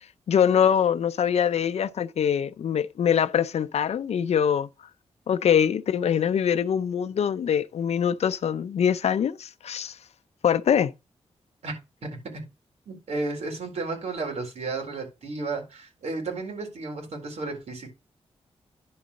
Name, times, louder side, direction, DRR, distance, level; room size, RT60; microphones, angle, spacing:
voice 1, 0.3-4.7 5.3-10.0 10.4-10.9, left 8 dB, 75° left, 0.5 m, -23 dB
voice 2, 12.9-17.9, right 3 dB, 75° right, 4.0 m, -33 dB
10.5 x 3.9 x 6.3 m
cardioid pair, 90°, 11 cm